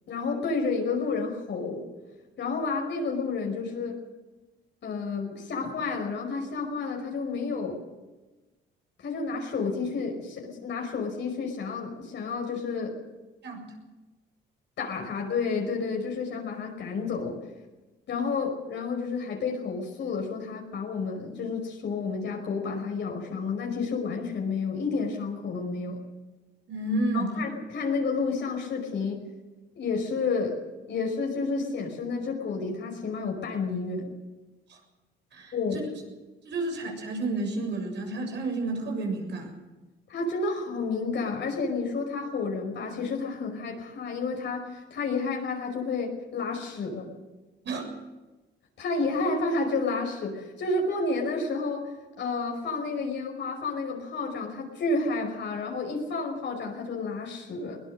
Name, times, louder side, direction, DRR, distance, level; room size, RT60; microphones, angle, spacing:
voice 1, 0.1-1.9 2.4-4.0 4.8-7.8 9.0-13.0 14.8-17.4 18.1-26.0 27.1-29.2 29.7-30.6 30.9-34.1 35.5-35.8 40.1-44.6 44.9-47.1 48.8-57.8, left 4 dB, 65° left, 1 dB, 5.4 m, -30 dB
voice 2, 26.7-27.3 34.7-34.8 35.3-35.8 36.5-39.5 47.7-47.8, right 2 dB, 65° right, 3 dB, 7.1 m, -31 dB
22.0 x 19.0 x 6.6 m, 1.1 s
cardioid pair, 90°, 20 cm